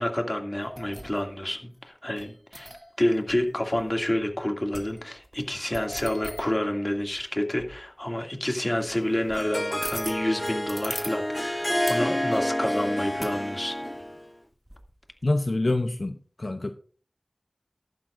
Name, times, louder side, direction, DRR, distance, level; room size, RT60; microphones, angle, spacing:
voice 1, 0.0-2.7 3.0-13.8, left 1 dB, 30° left, 3 dB, 2.4 m, -28 dB
sound 1, 0.6-1.4 2.2-3.0 3.3-3.4 3.7-4.3 4.7-7.3 7.6-7.9 8.9-9.4 9.8-11.2 11.9-12.1 13.2-13.4 14.7-15.4, equal, 15° right, 2.0 m, -40 dB
Harp, 8.9-14.3, equal, 10° left, 0.7 m, -29 dB
voice 2, 15.2-16.7, left 2 dB, 65° left, 7 dB, 0.7 m, -26 dB
14.0 x 12.0 x 2.6 m, 0.43 s
wide cardioid pair, 50°, 0 cm